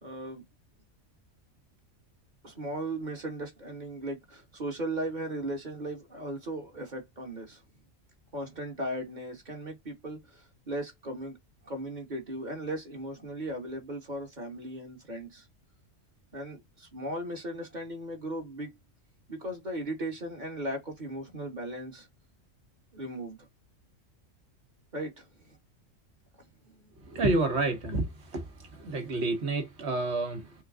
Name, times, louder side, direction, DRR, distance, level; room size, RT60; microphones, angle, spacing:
voice 1, 0.0-0.4 2.4-7.6 8.3-11.4 11.6-15.5 16.3-18.8 19.3-22.1 22.9-23.4 24.9-25.6 26.8-26.9, right 1 dB, 35° right, 1.6 m, -37 dB
voice 2, 27.0-30.5, right 2 dB, 55° right, 1.6 m, -29 dB
4.4 x 2.3 x 3.7 m
omnidirectional pair, 1.3 m